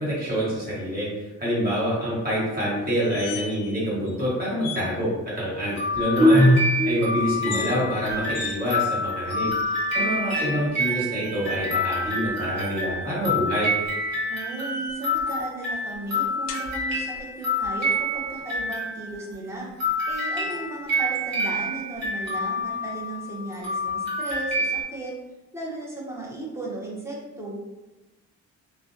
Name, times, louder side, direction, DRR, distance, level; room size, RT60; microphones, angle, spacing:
voice 1, 0.0-6.5 6.8-13.7, equal, 30° right, -7 dB, 1.2 m, -27 dB
sound 1, 2.9-3.8 4.1-4.2 4.6-4.9 7.3-7.7 8.3-8.6 9.3-9.9 10.8-11.6 13.5-15.1 16.5-16.7, left 6 dB, 55° left, 0.4 m, -39 dB
sound 2, 5.8-19.3 19.8-24.8, left 1 dB, 60° right, 1.1 m, -26 dB
voice 2, 9.9-10.6 14.3-19.7 20.1-25.1 25.5-27.6, right 2 dB, 10° right, -4 dB, 0.7 m, -35 dB
2.4 x 2.1 x 2.5 m, 1.1 s
cardioid pair, 90°, 30 cm